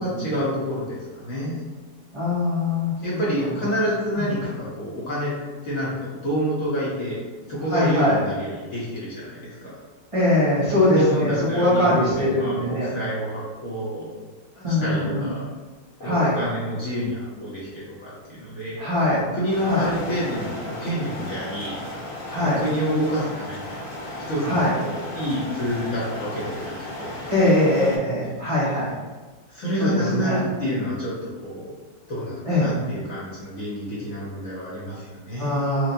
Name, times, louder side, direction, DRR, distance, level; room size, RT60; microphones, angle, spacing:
voice 1, 0.0-1.6 3.0-5.3 5.6-9.7 10.9-14.1 14.7-15.4 16.0-18.8 19.3-21.7 22.4-23.7 24.3-27.2 29.5-31.7 32.1-35.7, equal, 55° left, -7 dB, 1.1 m, -28 dB
voice 2, 2.1-3.5 4.1-4.2 7.7-8.2 10.1-12.9 14.6-15.3 16.0-16.4 18.8-19.2 19.6-19.9 22.3-22.6 24.4-24.7 27.3-28.9 29.8-30.4 32.4-32.7 35.4-35.9, left 1 dB, 45° right, -10 dB, 0.4 m, -22 dB
sound 1, 19.5-28.0, left 1 dB, 80° left, 0.5 m, -35 dB
4.5 x 2.0 x 2.6 m, 1.3 s
omnidirectional pair, 2.0 m